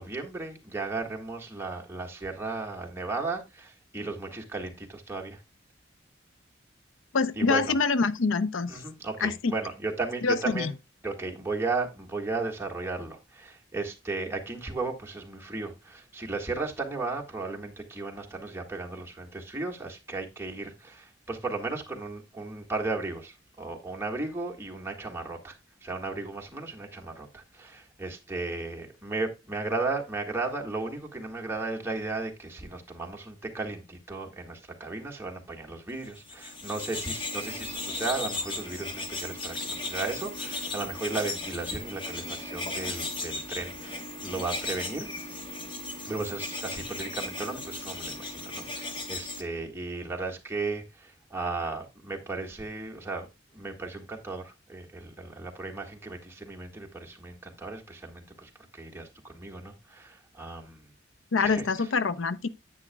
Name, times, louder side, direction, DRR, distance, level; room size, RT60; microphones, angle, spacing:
voice 1, 0.0-5.4 7.3-7.7 8.7-10.7 11.0-45.1 46.0-53.3 53.5-60.9 61.4-61.9, right 3 dB, 15° right, 1.7 m, -35 dB
voice 2, 7.1-8.8 9.2-9.5 10.2-10.7 61.3-62.5, left 4 dB, 90° left, 0.6 m, -25 dB
sound 1, 36.2-49.4, left 2 dB, 25° left, 1.2 m, -36 dB
9.9 x 8.8 x 2.2 m
head